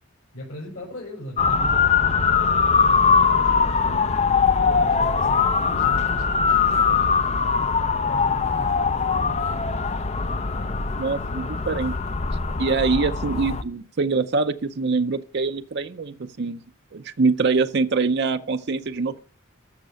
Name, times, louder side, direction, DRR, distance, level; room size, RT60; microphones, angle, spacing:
voice 1, 0.3-9.9, equal, 85° left, 5.5 m, -41 dB
Motor vehicle (road) / Siren, 1.4-13.6, left 5 dB, 35° left, 0.5 m, -21 dB
voice 2, 11.0-12.0 12.6-16.6 16.9-19.2, right 4 dB, 55° right, 0.6 m, -24 dB
13.5 x 6.4 x 6.3 m
head